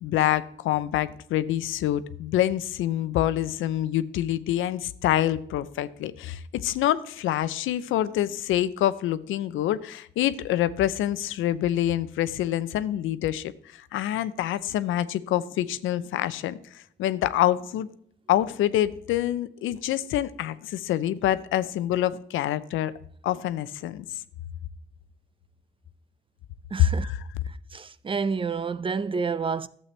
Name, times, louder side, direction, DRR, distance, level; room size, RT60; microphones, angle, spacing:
voice 1, 0.0-17.9 18.3-22.9 23.2-24.1 27.0-27.2, left 12 dB, 85° left, 0.6 m, -26 dB
voice 2, 26.7-27.1 27.4-29.7, right 5 dB, 25° right, 0.5 m, -29 dB
12.0 x 7.6 x 3.2 m
cardioid pair, 90°, 20 cm